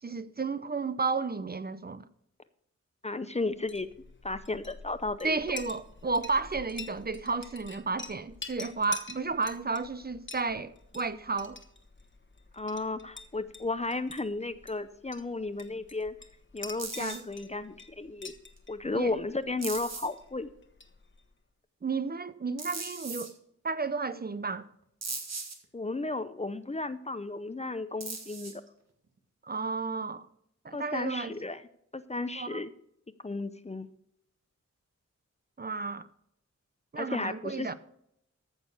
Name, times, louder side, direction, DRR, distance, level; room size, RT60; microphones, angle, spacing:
voice 1, 0.0-2.1 5.2-11.6 17.0-17.2 18.9-19.1 21.8-23.3 23.6-24.7 29.4-30.3 30.6-31.3 32.4-32.6 35.6-36.1 36.9-37.7, right 4 dB, 35° right, 0.6 m, -32 dB
voice 2, 3.0-3.9 4.2-5.4 12.5-16.1 16.5-18.3 18.7-20.5 25.7-28.6 30.7-31.6 31.9-32.7 33.2-33.9 37.0-37.7, left 2 dB, 25° left, 0.6 m, -34 dB
Chink clink, 3.5-21.3, left 3 dB, 40° left, 1.2 m, -47 dB
sound 1, 16.8-17.2 18.6-18.7 19.6-20.2 22.6-23.3 25.0-25.5 28.0-28.7, right 4 dB, 65° right, 2.0 m, -38 dB
14.5 x 6.4 x 4.9 m
wide cardioid pair, 100°, 29 cm